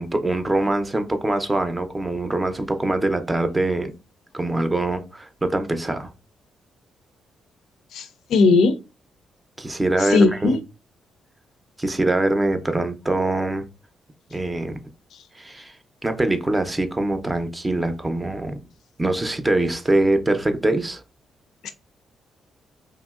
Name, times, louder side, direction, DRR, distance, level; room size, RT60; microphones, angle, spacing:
voice 1, 0.0-3.9 4.3-6.1 9.6-10.6 11.8-13.7 14.3-14.7 15.3-15.8 16.0-18.6 19.0-21.0, right 2 dB, 20° right, 0.5 m, -23 dB
voice 2, 7.9-8.8 10.0-10.6 21.6-21.7, left 4 dB, 75° left, 0.4 m, -18 dB
2.9 x 2.6 x 2.3 m
cardioid pair, 70°, 0 cm